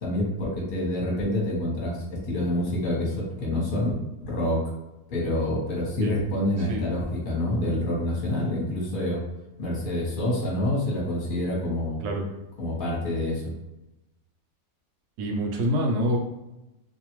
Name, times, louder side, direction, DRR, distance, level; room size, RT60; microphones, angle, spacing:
voice 1, 0.0-3.9 4.2-4.6 5.1-9.2 9.6-12.0 12.6-13.4, left 1 dB, 40° left, -4 dB, 0.9 m, -27 dB
voice 2, 15.2-16.2, equal, 80° right, 1 dB, 1.1 m, -26 dB
2.6 x 2.3 x 2.9 m, 1.0 s
omnidirectional pair, 1.7 m